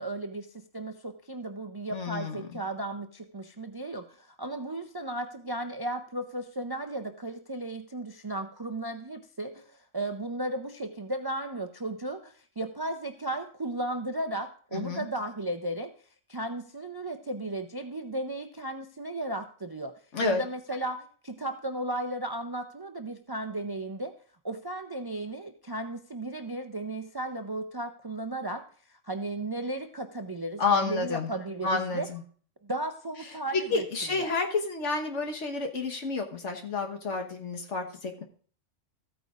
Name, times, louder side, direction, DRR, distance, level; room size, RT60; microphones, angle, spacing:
voice 1, 0.0-15.9 16.3-19.9 20.2-24.1 24.4-32.1 32.6-34.3, right 1 dB, 35° right, 7 dB, 0.4 m, -35 dB
voice 2, 1.9-2.4 14.7-15.0 20.1-20.4 30.6-31.3 31.6-32.2 33.7-38.2, left 4 dB, 70° left, 3 dB, 1.6 m, -30 dB
14.5 x 9.2 x 2.5 m, 0.43 s
omnidirectional pair, 1.3 m